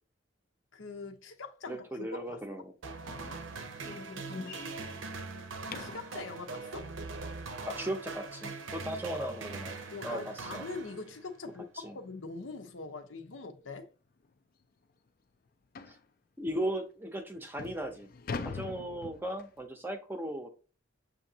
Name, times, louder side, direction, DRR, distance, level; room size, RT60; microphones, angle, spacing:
voice 1, 0.7-2.4 5.8-6.9 9.9-13.9, left 3 dB, 80° left, 0.8 m, -43 dB
voice 2, 1.7-2.7 7.7-9.7 10.0-10.7 11.8-12.0 15.9-16.0 16.4-18.1 18.4-20.5, right 1 dB, 10° right, 0.6 m, -37 dB
sound 1, 2.8-11.4, right 4 dB, 85° right, 0.7 m, -42 dB
sound 2, 3.0-6.1 8.9-9.0 9.5-9.7 10.1-10.2 10.7-10.8 11.8-12.0 12.4-12.5 13.2-13.3 13.6-13.7 14.2-14.3 15.7-16.0 16.8-16.9 17.4-19.6, left 4 dB, 50° left, 0.4 m, -43 dB
6.8 x 2.6 x 2.8 m
head